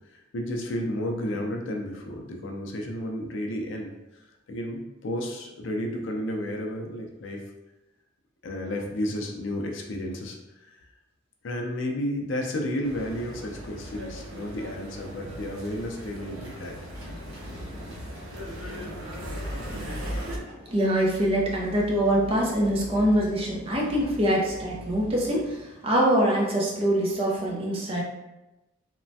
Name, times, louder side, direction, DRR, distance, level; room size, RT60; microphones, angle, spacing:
voice 1, 0.1-3.9 4.5-7.4 8.4-10.4 10.7-10.8 11.4-16.8, left 1 dB, 65° left, 2 dB, 0.4 m, -32 dB
sound 1, 12.8-20.4, equal, 90° right, 0.6 m, -38 dB
sound 2, 16.7-26.2, left 1 dB, 65° right, 1.2 m, -43 dB
voice 2, 20.7-28.0, right 1 dB, 30° right, -2 dB, 0.5 m, -24 dB
3.1 x 2.1 x 2.6 m, 0.97 s
head